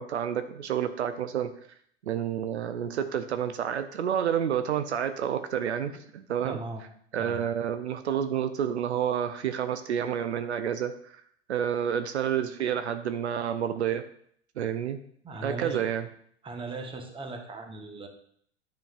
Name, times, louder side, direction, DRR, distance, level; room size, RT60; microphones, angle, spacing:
voice 1, 0.0-1.5 2.0-6.6 7.1-11.2 11.5-14.0 14.6-15.0 15.4-16.1, right 9 dB, 75° right, 10 dB, 0.6 m, -29 dB
voice 2, 6.4-6.8 7.2-7.5 15.2-15.8 16.4-18.1, right 3 dB, 15° right, 3 dB, 1.1 m, -38 dB
9.0 x 5.2 x 2.4 m, 0.63 s
figure-of-eight pair, 90°, 34 cm